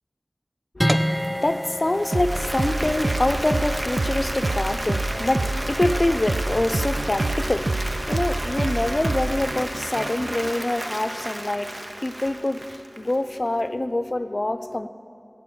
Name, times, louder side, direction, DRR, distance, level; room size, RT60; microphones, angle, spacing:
voice 1, 0.8-14.9, left 1 dB, 50° left, 0.6 m, -26 dB
sound 1, 0.8-11.3, equal, 5° left, 0.6 m, -32 dB
Applause, 1.9-13.6, right 1 dB, 35° right, 0.7 m, -33 dB
sound 2, 2.1-10.5, right 2 dB, 70° right, 0.4 m, -27 dB
17.0 x 9.2 x 7.8 m
wide cardioid pair, 45°, 0 cm